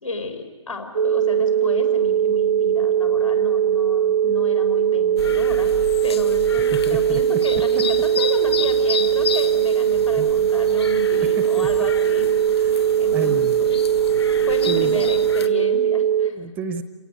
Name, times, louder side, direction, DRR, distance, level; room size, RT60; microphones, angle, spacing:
voice 1, 0.0-5.7 6.0-12.3 13.0-13.8 14.1-16.4, left 2 dB, 80° left, 4 dB, 4.9 m, -32 dB
sound 1, 1.0-16.3, right 9 dB, 70° right, 0.6 m, -20 dB
sound 2, 5.2-15.5, left 6 dB, 55° left, 1.6 m, -32 dB
voice 2, 6.6-7.2 10.1-10.3 11.2-11.7 12.6-13.6 14.7-15.0 16.2-16.8, right 6 dB, 10° right, 12 dB, 0.6 m, -31 dB
27.5 x 19.0 x 8.3 m, 1.4 s
figure-of-eight pair, 140°, 16 cm